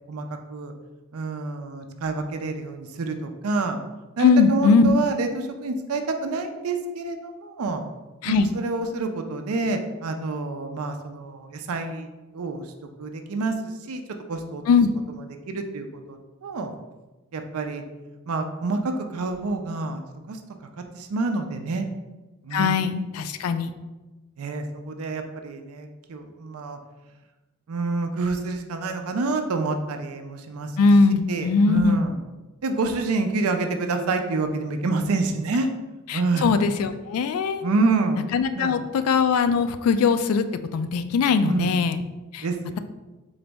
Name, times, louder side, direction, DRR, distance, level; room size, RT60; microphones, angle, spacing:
voice 1, 0.1-0.7 1.1-3.8 4.2-7.8 8.2-12.1 12.3-12.6 13.0-14.0 14.3-14.6 15.5-16.7 17.3-17.8 18.3-20.0 20.3-20.4 20.8-21.9 22.4-22.8 24.4-26.8 27.7-30.7 31.3-32.2 32.6-35.7 36.1-36.6 37.6-38.2 38.5-38.8 41.4-41.7 42.4-42.8, right 3 dB, 85° right, 6 dB, 0.5 m, -27 dB
voice 2, 4.2-4.9 8.2-8.5 14.7-14.9 22.5-23.7 30.8-32.0 36.1-37.6 38.3-40.5 40.7-42.0 42.3-42.5, left 4 dB, 85° left, 10 dB, 0.3 m, -20 dB
3.9 x 3.9 x 3.4 m, 1.1 s
head